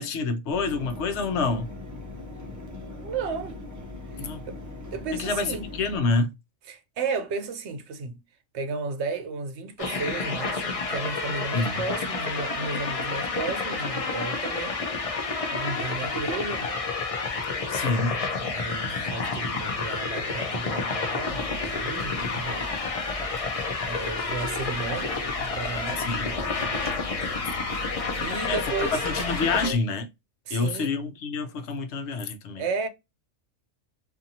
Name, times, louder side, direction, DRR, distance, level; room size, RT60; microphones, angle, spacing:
voice 1, 0.0-1.7 4.2-4.4 5.2-5.5 5.7-6.3 11.5-11.8 17.7-18.3 26.0-26.3 28.5-28.6 28.9-30.1 30.5-32.6, left 4 dB, 70° left, 0.9 m, -27 dB
Mechanisms, 0.5-6.0, left 2 dB, 25° right, 0.4 m, -40 dB
voice 2, 3.0-3.6 4.2-4.6 4.9-5.7 6.7-8.2 8.5-14.8 15.5-16.8 18.4-22.7 23.9-26.1 26.5-26.6 28.2-29.0 30.5-30.9 32.6-32.9, right 4 dB, 65° right, 0.8 m, -33 dB
sound 1, 9.8-29.7, left 4 dB, 45° left, 0.4 m, -30 dB
sound 2, 21.2-29.8, equal, 10° right, 1.1 m, -40 dB
2.6 x 2.5 x 2.6 m
omnidirectional pair, 1.3 m